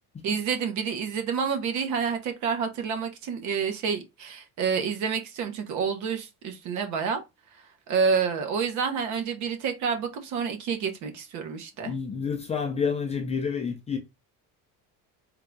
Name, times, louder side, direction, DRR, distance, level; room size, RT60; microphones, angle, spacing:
voice 1, 0.2-7.2 7.9-11.9, right 6 dB, 55° right, 0.9 m, -28 dB
voice 2, 11.8-14.0, left 6 dB, 20° left, 0.5 m, -29 dB
3.8 x 2.4 x 4.4 m
cardioid pair, 165°, 36 cm